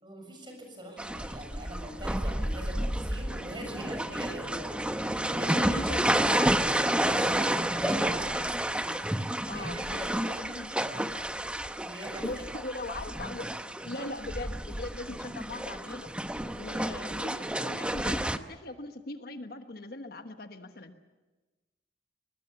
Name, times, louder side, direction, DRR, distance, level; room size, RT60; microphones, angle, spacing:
voice 1, 0.0-5.8 7.0-8.2 9.5-10.2 11.8-12.3, right 1 dB, 25° right, 3 dB, 6.8 m, -42 dB
sound 1, 1.0-18.4, right 1 dB, 5° right, 0.8 m, -30 dB
sound 2, 2.6-8.9, equal, 55° right, 4.8 m, -47 dB
voice 2, 5.5-6.5 9.4-11.3 12.2-13.5 13.8-16.1 16.6-20.9, left 2 dB, 60° left, 7 dB, 1.3 m, -40 dB
24.0 x 20.0 x 7.2 m, 1.2 s
head